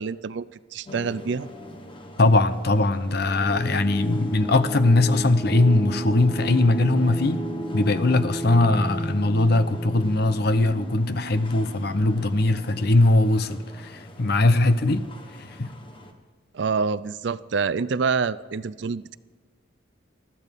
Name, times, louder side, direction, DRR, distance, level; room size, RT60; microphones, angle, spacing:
voice 1, 0.0-1.5 16.5-19.2, right 5 dB, 60° right, 0.4 m, -27 dB
sound 1, 0.9-16.1, right 1 dB, 25° left, 1.2 m, -35 dB
voice 2, 2.2-7.4 7.7-15.0 15.4-15.7, left 2 dB, 55° left, 0.7 m, -21 dB
20.5 x 13.5 x 3.6 m
head